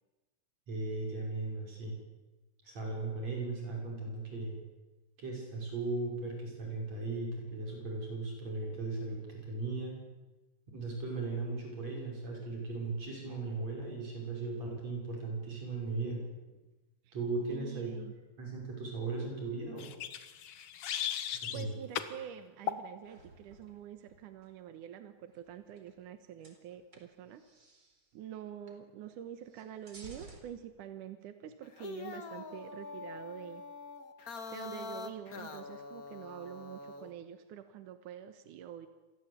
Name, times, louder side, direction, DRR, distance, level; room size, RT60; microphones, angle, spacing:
voice 1, 0.7-1.9 2.6-4.6 5.2-10.0 10.7-16.3 17.1-17.9 18.4-19.9 21.3-21.7, right 3 dB, 55° right, 0 dB, 7.4 m, -37 dB
voice 2, 17.5-18.1 21.5-27.4 28.1-33.6 34.5-38.9, right 10 dB, 85° right, 9 dB, 2.8 m, -46 dB
sound 1, 19.8-21.6 21.9-22.2 22.7-22.9, left 10 dB, 80° left, 3.0 m, -37 dB
sound 2, 23.0-24.5 25.3-26.1 26.4-28.1 28.7-28.8 29.1-30.4, right 2 dB, 35° right, 4.3 m, -56 dB
sound 3, 31.6-37.1, left 4 dB, 35° left, 1.9 m, -44 dB
28.0 x 23.0 x 8.4 m, 1.1 s
omnidirectional pair, 3.6 m